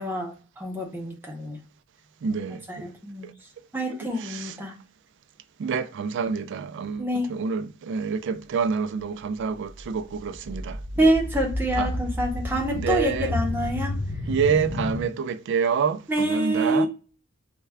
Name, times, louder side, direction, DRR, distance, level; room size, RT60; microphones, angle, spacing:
voice 1, 0.0-1.6 2.7-3.3 3.7-4.7 7.0-7.3 11.0-13.9 16.1-16.9, right 1 dB, 10° right, 0.7 m, -26 dB
voice 2, 2.2-2.9 3.2-3.3 3.9-4.6 5.6-11.1 11.8-11.9 12.7-13.4 14.3-16.9, right 6 dB, 55° right, 0.3 m, -28 dB
sound 1, 9.7-15.0, left 1 dB, 45° left, 0.5 m, -31 dB
3.2 x 2.2 x 3.4 m
head